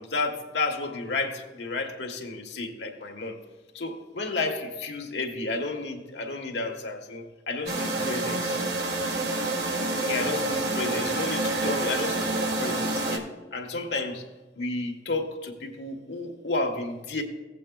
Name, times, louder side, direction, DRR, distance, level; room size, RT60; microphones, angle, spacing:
voice 1, 0.0-3.4 3.7-8.6 10.0-14.2 14.6-17.2, left 3 dB, 75° left, 3 dB, 1.4 m, -32 dB
sound 1, 7.7-13.2, right 2 dB, 70° right, 1.6 m, -28 dB
16.0 x 8.3 x 2.3 m, 1.2 s
head